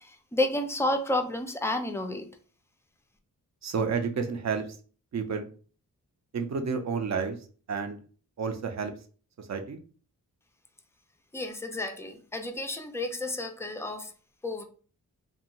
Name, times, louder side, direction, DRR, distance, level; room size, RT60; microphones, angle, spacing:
voice 1, 0.0-2.3 11.3-14.1 14.4-14.6, left 1 dB, 10° left, 6 dB, 0.3 m, -31 dB
voice 2, 3.6-4.6 5.1-5.5 6.3-7.4 7.7-8.0 8.4-8.9 9.5-9.8, right 5 dB, 50° right, 6 dB, 0.5 m, -30 dB
2.6 x 2.3 x 2.9 m, 0.40 s
wide cardioid pair, 105°, 36 cm